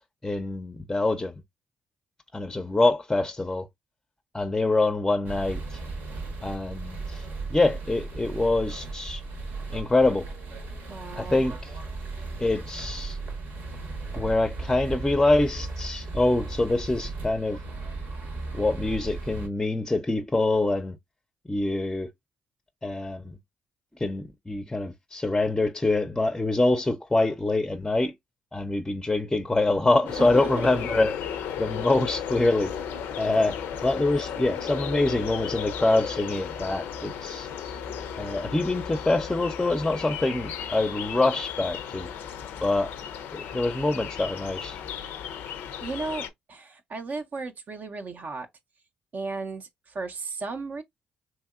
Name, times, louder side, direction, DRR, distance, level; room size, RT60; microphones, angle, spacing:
voice 1, 0.2-1.4 2.3-3.7 4.3-5.8 6.4-7.2 7.5-9.2 9.7-10.3 11.2-11.7 12.4-13.2 14.2-17.6 18.5-20.9 21.5-22.1 22.8-23.4 24.0-28.1 28.5-31.2 31.6-32.7 33.2-37.5 38.2-42.1 42.6-42.9 43.3-44.8, left 2 dB, 15° left, 0.4 m, -25 dB
sound 1, 5.2-19.5, right 3 dB, 75° right, 0.9 m, -36 dB
voice 2, 10.9-11.5 30.2-30.7 45.8-48.5 49.1-50.8, right 3 dB, 55° right, 0.5 m, -35 dB
sound 2, 30.1-46.3, left 8 dB, 80° left, 0.4 m, -35 dB
2.9 x 2.6 x 2.3 m
supercardioid pair, 50°, 3 cm